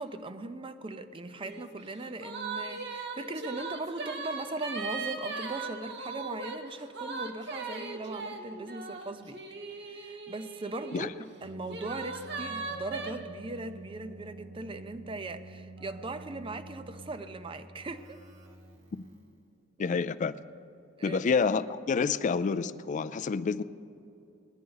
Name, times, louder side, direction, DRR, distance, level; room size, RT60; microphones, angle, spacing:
voice 1, 0.0-9.4 9.8-11.1 11.4-18.2 21.0-21.2, right 2 dB, 25° right, 11 dB, 0.5 m, -39 dB
sound 1, 1.4-1.7 2.0-11.1 11.7-13.1, right 3 dB, 60° right, 1.2 m, -38 dB
Keyboard (musical), 11.3-19.5, right 2 dB, 80° right, 1.3 m, -49 dB
voice 2, 19.8-20.4 21.0-23.6, left 5 dB, 40° left, 14 dB, 0.3 m, -28 dB
19.0 x 10.5 x 3.9 m, 2.6 s
head